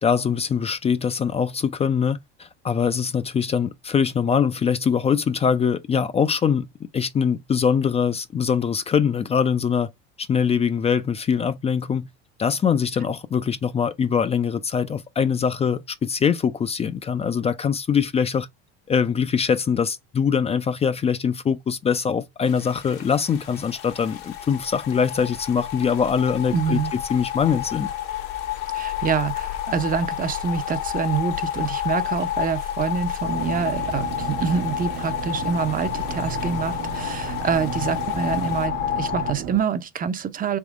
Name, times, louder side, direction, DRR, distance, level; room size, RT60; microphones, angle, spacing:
voice 1, 0.0-6.7 6.9-9.9 10.2-12.1 12.4-18.5 18.9-27.9, left 7 dB, 20° left, 0.3 m, -23 dB
sound 1, 22.4-38.7, left 9 dB, 75° left, 1.3 m, -46 dB
sound 2, 23.4-39.3, left 11 dB, 60° left, 1.0 m, -30 dB
voice 2, 26.5-26.9 28.7-40.6, right 6 dB, 30° right, 0.6 m, -26 dB
sound 3, 33.2-39.6, right 8 dB, 60° right, 1.2 m, -34 dB
3.6 x 3.0 x 3.4 m
supercardioid pair, 90°, 29 cm